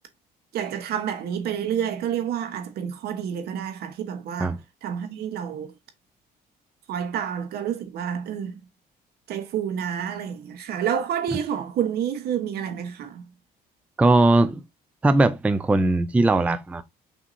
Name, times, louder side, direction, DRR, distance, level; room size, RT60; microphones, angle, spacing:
voice 1, 0.5-5.7 6.9-8.6 9.3-13.2, right 8 dB, 70° right, 1.1 m, -29 dB
voice 2, 14.0-14.6 15.0-16.8, right 2 dB, 10° right, 0.3 m, -19 dB
5.9 x 2.8 x 2.6 m
cardioid pair, 110°, 17 cm